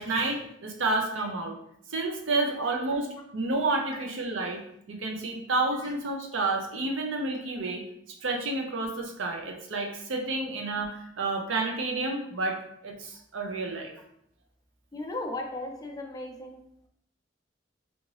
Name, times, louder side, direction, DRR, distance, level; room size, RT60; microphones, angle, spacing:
voice 1, 0.0-1.6 1.9-3.1 3.3-4.6 4.9-7.8 8.1-12.6 12.8-13.9, right 3 dB, 90° right, 2 dB, 0.7 m, -30 dB
voice 2, 14.9-16.6, left 2 dB, 20° left, 2 dB, 0.4 m, -36 dB
3.5 x 2.6 x 3.2 m, 0.74 s
head